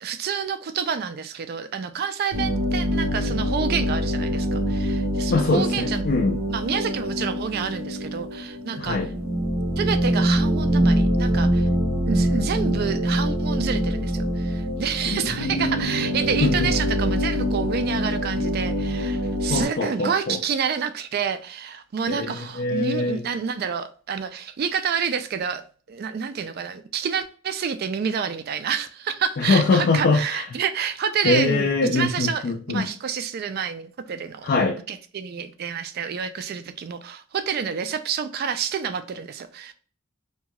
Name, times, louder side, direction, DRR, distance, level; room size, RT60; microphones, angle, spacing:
voice 1, 0.0-6.0 6.5-9.0 9.8-11.7 12.1-25.6 25.9-34.5 34.9-39.7, right 7 dB, 50° right, 0.3 m, -28 dB
sound 1, 2.3-19.6, equal, 85° right, 0.8 m, -24 dB
voice 2, 5.3-6.4 8.8-9.1 15.1-15.9 16.4-16.7 19.5-20.4 22.1-23.2 29.4-30.5 31.2-32.9 34.4-34.8, left 3 dB, 50° left, 0.3 m, -23 dB
2.8 x 2.2 x 2.8 m
head